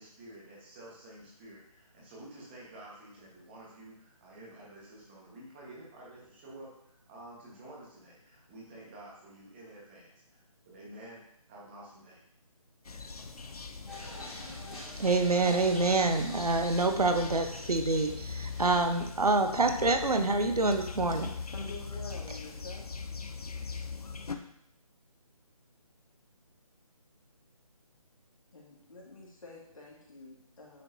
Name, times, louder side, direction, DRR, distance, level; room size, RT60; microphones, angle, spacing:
voice 1, 0.0-12.2, right 1 dB, 20° right, -4 dB, 1.4 m, -50 dB
sound 1, 12.8-24.4, left 5 dB, 85° left, 0.7 m, -41 dB
sound 2, 13.9-19.0, left 1 dB, ahead, 0.9 m, -47 dB
voice 2, 15.0-21.3, right 3 dB, 90° right, 7 dB, 1.0 m, -27 dB
voice 3, 21.5-22.9 28.5-30.8, left 2 dB, 65° left, -2 dB, 2.2 m, -47 dB
9.6 x 4.5 x 2.8 m, 0.74 s
figure-of-eight pair, 160°, 19 cm